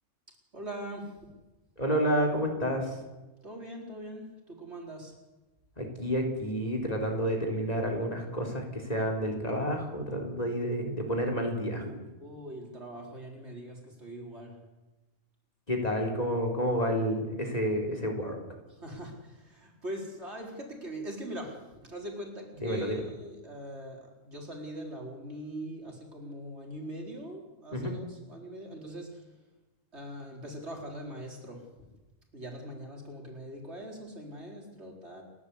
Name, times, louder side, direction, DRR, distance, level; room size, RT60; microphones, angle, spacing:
voice 1, 0.5-1.1 3.4-5.1 12.2-14.6 18.7-29.2 29.9-31.9 32.3-35.2, right 1 dB, 55° right, 0 dB, 4.6 m, -42 dB
voice 2, 1.8-3.0 5.8-12.0 15.7-18.4 22.6-23.0 27.7-27.9, equal, 30° left, 2 dB, 3.7 m, -30 dB
29.5 x 12.0 x 8.3 m, 1.1 s
omnidirectional pair, 1.3 m